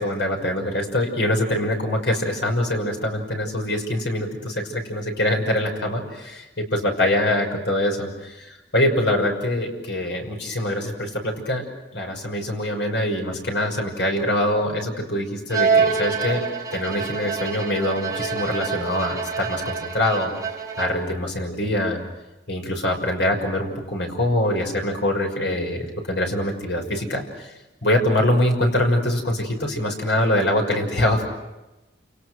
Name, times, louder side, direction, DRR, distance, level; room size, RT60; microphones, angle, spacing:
voice 1, 0.0-11.7 11.9-16.4 16.7-20.3 20.8-22.0 22.5-27.5 27.8-31.2, left 1 dB, 75° left, 3 dB, 6.0 m, -24 dB
Bowed string instrument, 15.5-21.2, right 5 dB, 20° right, 4.0 m, -26 dB
29.5 x 29.0 x 6.4 m, 1.1 s
head